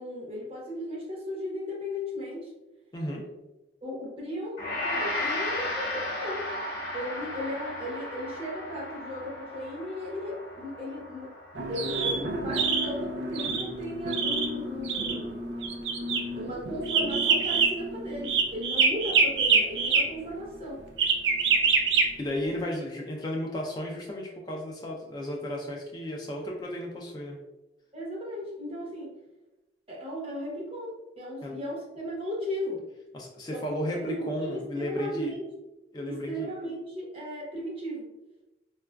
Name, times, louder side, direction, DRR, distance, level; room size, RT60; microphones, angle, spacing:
voice 1, 0.0-2.5 3.8-6.5 6.9-11.3 11.7-15.4 16.4-20.8 27.9-29.1 29.9-32.8 33.5-35.5 36.1-38.1, equal, 35° right, -3 dB, 0.8 m, -36 dB
voice 2, 2.9-3.2 22.2-27.4 31.4-31.6 33.1-35.3 35.9-36.5, left 1 dB, 25° left, -1 dB, 0.4 m, -33 dB
Gong, 4.6-13.8, left 1 dB, 55° left, 0.8 m, -35 dB
sound 1, 11.5-20.0 21.0-22.0, right 4 dB, 85° right, 0.4 m, -26 dB
3.9 x 2.3 x 2.2 m, 1.0 s
head